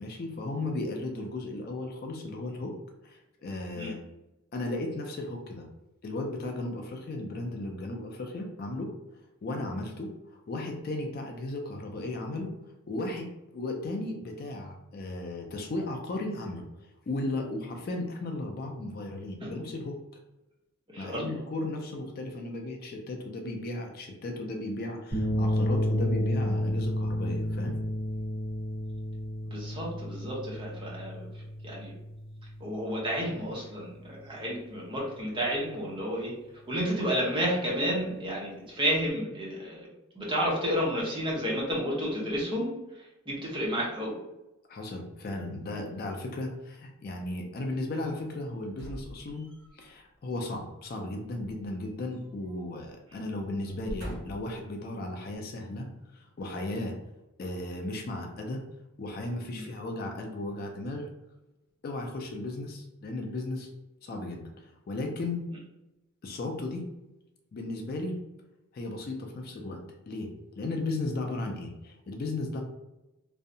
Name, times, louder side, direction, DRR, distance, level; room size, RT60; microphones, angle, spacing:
voice 1, 0.0-2.7 3.0-4.0 4.5-5.7 6.0-8.9 9.4-12.5 12.9-16.6 17.1-20.0 21.0-27.8 44.7-49.5 49.7-55.9 56.1-57.0 57.4-58.6 59.0-61.1 61.8-63.7 64.0-65.5 66.2-66.9 67.5-68.2 68.7-69.8 70.1-72.6, left 2 dB, 45° left, 2 dB, 0.3 m, -35 dB
voice 2, 20.9-21.4 29.5-31.3 31.6-31.9 32.6-36.3 36.7-39.9 40.1-42.7 43.3-44.1 59.5-59.7, equal, 20° right, -4 dB, 0.6 m, -31 dB
sound 1, 25.1-33.6, equal, 25° left, 1.1 m, -31 dB
sound 2, 48.7-49.9 51.4-52.6 52.9-53.1 53.6-54.6 55.3-55.4, equal, 55° right, 1.5 m, -43 dB
2.6 x 2.1 x 2.6 m, 0.97 s
head